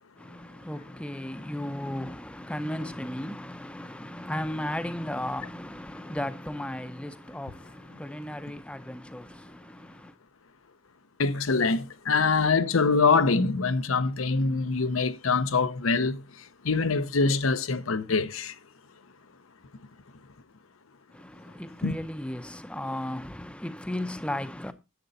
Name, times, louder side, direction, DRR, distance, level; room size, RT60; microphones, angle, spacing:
voice 1, 0.2-10.1 21.1-24.7, left 1 dB, 5° left, 0.6 m, -35 dB
voice 2, 11.2-18.6 21.8-22.0, left 4 dB, 85° left, 0.9 m, -24 dB
10.5 x 7.9 x 4.1 m
head